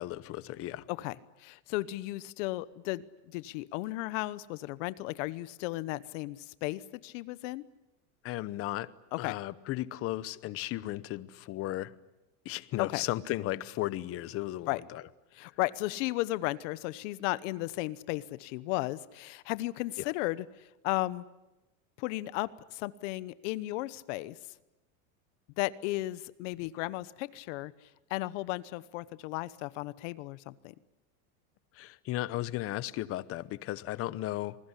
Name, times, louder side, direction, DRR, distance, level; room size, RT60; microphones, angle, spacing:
voice 1, 0.0-0.8 8.2-8.9 9.2-11.9 12.4-15.0 31.8-34.6, left 15 dB, 35° left, 18 dB, 0.9 m, -35 dB
voice 2, 0.9-7.6 9.1-9.4 12.8-13.0 14.7-14.8 15.3-21.2 22.0-24.4 25.6-30.7, left 18 dB, 60° left, 17 dB, 1.0 m, -35 dB
28.0 x 20.0 x 9.9 m, 0.99 s
supercardioid pair, 155°, 41 cm